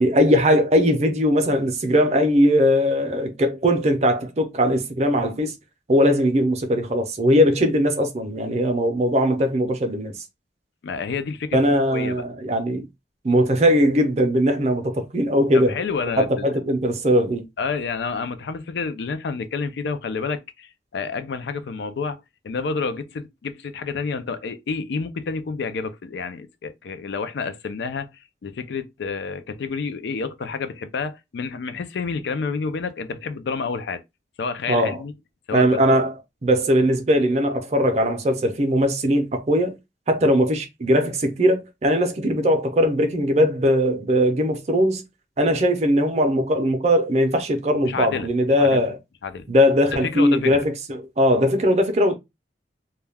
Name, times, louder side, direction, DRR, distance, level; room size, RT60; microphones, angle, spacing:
voice 1, 0.0-5.5 5.9-10.2 11.5-12.9 13.2-15.8 16.2-17.5 34.7-35.0 35.5-36.1 36.4-39.8 40.1-45.0 45.4-49.0 49.5-52.1, equal, 35° right, 0.5 m, -20 dB
voice 2, 10.8-11.6 11.9-12.3 15.5-16.5 17.6-34.0 34.4-35.1 35.5-36.0 47.9-48.3 48.6-48.8 49.2-49.5 49.9-50.7, left 4 dB, 75° left, 0.4 m, -29 dB
2.3 x 2.2 x 3.3 m
head